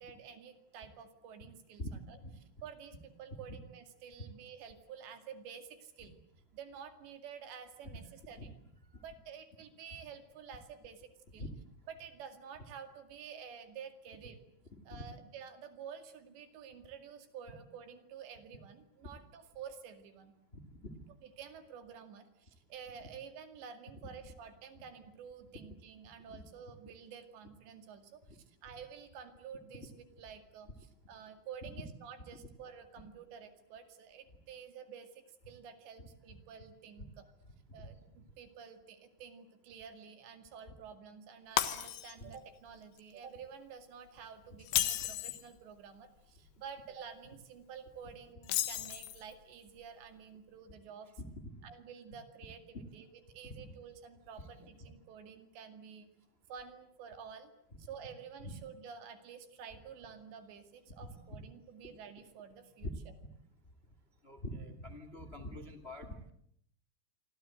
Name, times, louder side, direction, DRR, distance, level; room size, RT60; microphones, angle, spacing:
voice 1, 0.0-2.2 2.6-6.1 6.5-8.5 9.0-11.4 11.9-14.4 14.9-20.3 21.2-37.3 37.7-51.1 51.6-56.1 56.5-57.5 57.8-62.9, right 7 dB, 65° right, 8 dB, 4.2 m, -50 dB
voice 2, 20.5-21.0 26.3-26.4 28.7-28.8 31.6-31.7 37.7-37.9 42.2-42.3 51.4-51.6 53.6-53.7 54.4-54.7 58.4-58.5 61.3-61.4 62.8-62.9 64.2-66.3, left 1 dB, 35° left, 10 dB, 0.9 m, -44 dB
Shatter, 41.6-42.4 42.8-43.0 44.6-45.5 48.4-49.3, left 13 dB, 75° left, 3.8 m, -33 dB
27.0 x 25.0 x 7.9 m, 0.71 s
omnidirectional pair, 5.8 m